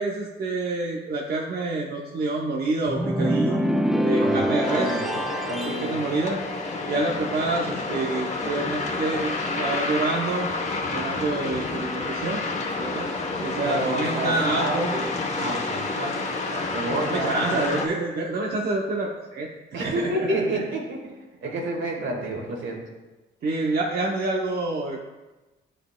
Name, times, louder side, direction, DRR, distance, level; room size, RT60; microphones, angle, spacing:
voice 1, 0.0-3.6 4.0-4.9 5.6-6.4 6.9-10.5 10.9-12.4 12.7-13.1 13.4-15.0 15.9-16.6 16.9-19.5 19.8-20.3 20.5-20.6 23.4-25.0, right 2 dB, 50° right, -1 dB, 0.8 m, -27 dB
sound 1, 2.9-5.9, equal, ahead, 0.4 m, -24 dB
voice 2, 4.2-5.2 5.5-6.1 13.6-15.1 15.4-15.9 16.7-17.7 19.7-21.1 21.4-22.8, right 1 dB, 75° right, 0 dB, 1.9 m, -29 dB
sound 2, 4.6-17.9, left 3 dB, 35° left, 1.1 m, -29 dB
10.5 x 5.1 x 2.3 m, 1.1 s
cardioid pair, 90°, 20 cm